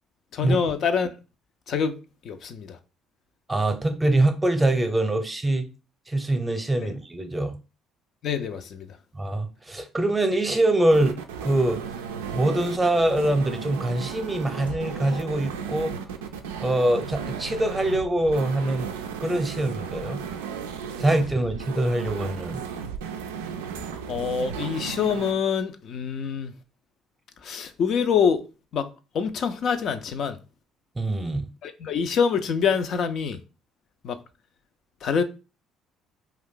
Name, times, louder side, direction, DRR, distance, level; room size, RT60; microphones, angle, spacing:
voice 1, 0.3-1.1 1.7-2.0 2.2-2.8 6.8-6.9 8.2-9.0 24.1-26.5 27.4-28.4 28.7-28.9 29.1-30.4 31.6-33.4 34.0-34.2 35.0-35.2, left 6 dB, 60° left, 0.4 m, -25 dB
voice 2, 3.5-5.7 6.1-7.6 9.1-11.8 12.3-16.0 16.6-18.9 19.2-20.2 21.0-22.6 31.0-31.5, right 1 dB, 20° right, 0.7 m, -24 dB
sound 1, 10.9-25.3, right 7 dB, 85° right, 0.3 m, -35 dB
sound 2, 12.9-15.8, equal, 85° left, 1.3 m, -47 dB
2.5 x 2.3 x 3.7 m
hypercardioid pair, 55°, 0 cm